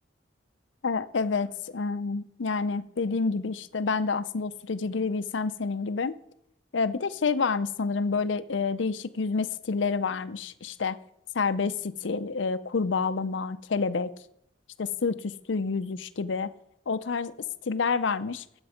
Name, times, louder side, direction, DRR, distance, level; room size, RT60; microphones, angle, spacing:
voice 1, 0.8-6.1 6.7-11.0 11.3-14.1 14.8-16.5 16.9-17.3 17.7-18.4, left 4 dB, 75° left, 14 dB, 0.6 m, -28 dB
12.5 x 8.0 x 5.0 m, 0.77 s
head